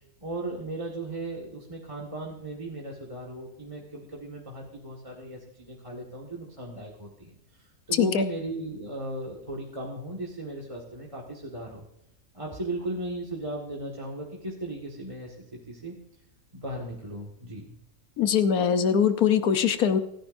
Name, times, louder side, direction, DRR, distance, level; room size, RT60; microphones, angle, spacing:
voice 1, 0.2-11.8 12.3-15.4 15.7-15.9 16.5-17.8, right 1 dB, 20° right, -1 dB, 1.8 m, -36 dB
voice 2, 18.2-20.0, left 7 dB, 85° left, 9 dB, 1.4 m, -22 dB
29.5 x 10.0 x 2.6 m, 0.83 s
omnidirectional pair, 1.5 m